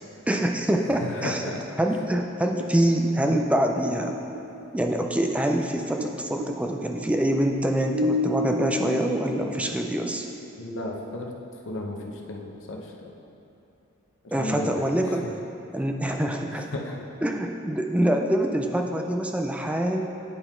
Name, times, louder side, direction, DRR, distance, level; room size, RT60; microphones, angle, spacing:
voice 1, 0.3-1.5 1.8-4.1 4.7-10.3 14.3-15.3 15.7-16.7 17.2-20.0, right 1 dB, 5° right, 3 dB, 0.4 m, -25 dB
voice 2, 0.9-1.6 10.6-11.3 11.7-13.1 14.4-15.3 16.5-17.0, left 1 dB, 65° left, 0 dB, 0.8 m, -34 dB
sound 1, 2.6-6.1 6.4-10.5, left 1 dB, 65° right, 0.5 m, -31 dB
10.0 x 3.9 x 4.4 m, 2.9 s
head